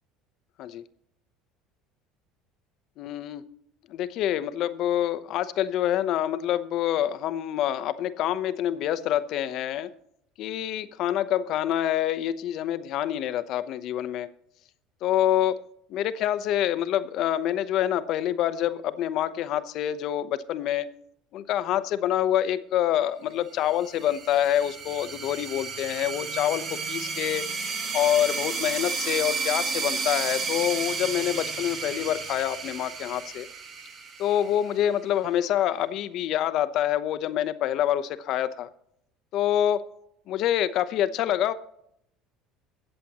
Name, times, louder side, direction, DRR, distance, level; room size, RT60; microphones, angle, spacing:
voice 1, 3.0-3.4 3.9-9.9 10.4-14.3 15.0-15.6 15.9-20.9 21.3-27.5 27.9-33.5 34.2-38.7 39.3-39.8 40.3-41.5, left 11 dB, 60° left, 12 dB, 0.9 m, -26 dB
Creepy Transition, 23.7-35.0, right 5 dB, 45° right, 2.0 m, -32 dB
22.5 x 7.7 x 3.0 m, 0.73 s
supercardioid pair, 100°, 0 cm